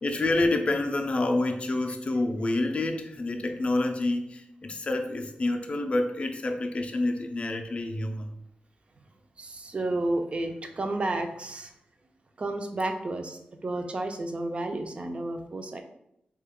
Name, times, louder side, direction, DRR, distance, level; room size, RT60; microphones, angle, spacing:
voice 1, 0.0-8.4, left 2 dB, 35° left, 4 dB, 0.4 m, -28 dB
voice 2, 9.4-11.7 12.4-15.8, right 2 dB, 35° right, 5 dB, 0.4 m, -31 dB
3.2 x 2.2 x 3.5 m, 0.78 s
wide cardioid pair, 125°, 3 cm